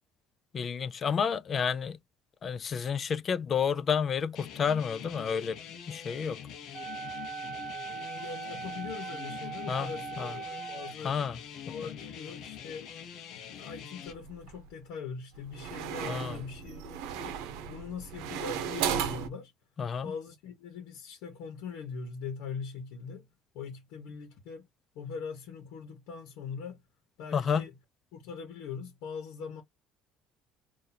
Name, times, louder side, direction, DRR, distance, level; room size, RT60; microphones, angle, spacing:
voice 1, 0.5-2.0 2.4-5.6 5.9-6.4 9.7-10.3 11.0-11.4 11.7-11.8 16.1-16.4 19.8-20.1 27.3-27.7, left 6 dB, 25° left, 0.3 m, -30 dB
sound 1, 4.3-14.1, left 8 dB, 50° left, 0.8 m, -45 dB
Wind instrument woodwind instrument, 6.7-10.9, right 6 dB, 50° right, 0.6 m, -40 dB
voice 2, 7.9-11.2 11.7-12.9 13.3-17.4 17.7-19.5 20.0-23.3 23.5-24.7 24.9-26.8 27.2-27.7 28.1-29.6, left 5 dB, 75° left, 1.1 m, -42 dB
sound 2, 14.1-14.7 15.3-19.3, right 8 dB, 85° right, 0.7 m, -35 dB
2.8 x 2.6 x 3.9 m
cardioid pair, 175°, 0 cm